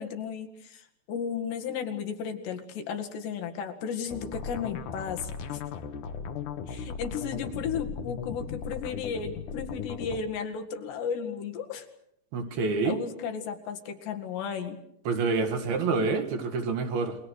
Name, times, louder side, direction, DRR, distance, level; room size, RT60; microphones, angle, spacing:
voice 1, 0.0-5.6 6.7-11.9 12.8-14.8, left 7 dB, 75° left, 4 dB, 4.2 m, -34 dB
sound 1, 4.1-10.2, left 6 dB, 60° left, 2.4 m, -37 dB
voice 2, 12.3-13.0 15.1-17.2, right 4 dB, 65° right, 6 dB, 3.7 m, -27 dB
28.5 x 23.0 x 6.5 m, 0.74 s
omnidirectional pair, 5.0 m